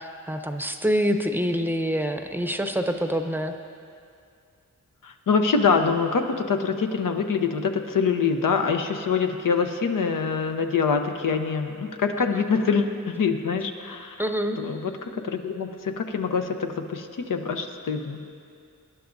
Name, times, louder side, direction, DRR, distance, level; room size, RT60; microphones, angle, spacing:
voice 1, 0.0-3.5 12.2-12.4 14.2-14.6, equal, 5° right, 5 dB, 0.7 m, -26 dB
voice 2, 5.0-14.1 14.6-14.9 15.2-18.2, left 5 dB, 75° left, 5 dB, 0.8 m, -25 dB
19.5 x 10.5 x 2.7 m, 2.4 s
wide cardioid pair, 80°, 32 cm